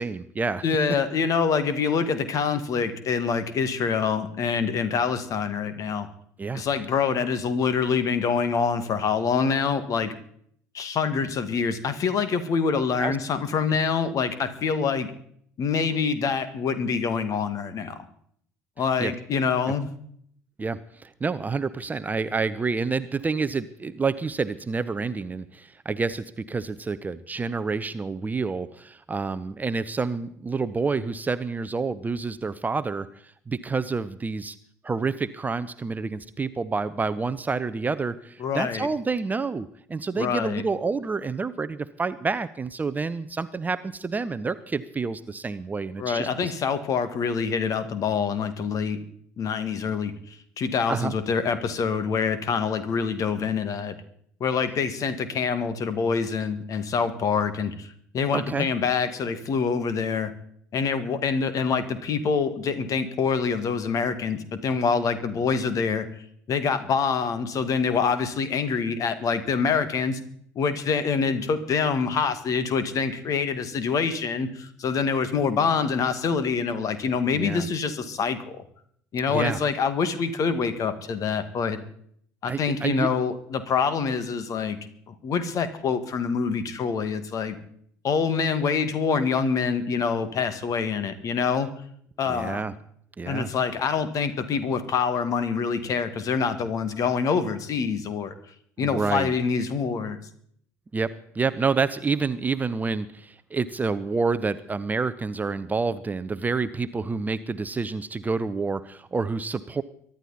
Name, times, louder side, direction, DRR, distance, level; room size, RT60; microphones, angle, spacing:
voice 1, 0.0-0.6 6.4-6.6 13.0-13.2 19.0-19.1 20.6-34.6 34.8-46.5 50.9-51.1 58.3-58.7 77.3-77.7 79.3-79.6 82.5-83.1 92.3-92.7 93.2-93.5 98.8-99.3 100.9-109.8, right 4 dB, 20° right, 14 dB, 0.8 m, -28 dB
voice 2, 0.6-6.1 6.5-10.1 10.7-15.1 15.6-17.9 18.8-19.9 38.4-38.9 40.1-40.6 46.0-49.0 49.4-50.1 50.6-54.0 54.4-60.3 60.7-66.1 66.5-70.2 70.6-78.6 79.1-81.8 82.4-84.8 85.1-87.6 88.0-91.7 92.2-92.7 93.2-98.3 98.8-100.2, left 5 dB, 40° left, 12 dB, 1.9 m, -25 dB
23.5 x 11.5 x 4.2 m, 0.64 s
figure-of-eight pair, 60°, 9 cm